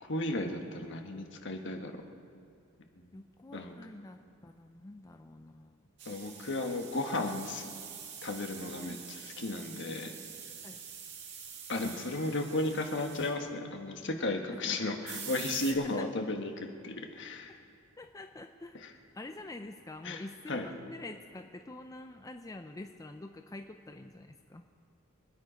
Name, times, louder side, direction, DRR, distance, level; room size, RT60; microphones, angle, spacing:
voice 1, 0.0-1.9 3.5-3.7 6.1-7.6 8.2-9.0 9.4-10.1 11.7-17.6 18.8-18.9 20.0-20.2 20.5-20.7, left 2 dB, 60° left, 4 dB, 1.4 m, -34 dB
voice 2, 3.1-5.8 8.8-9.0 10.6-10.8 14.5-14.8 15.7-16.1 18.0-18.8 19.1-24.6, left 2 dB, 15° left, 6 dB, 0.5 m, -46 dB
sound 1, 6.0-13.4 15.0-15.7, right 7 dB, 55° right, 1.9 m, -46 dB
25.5 x 9.9 x 5.1 m, 2.3 s
head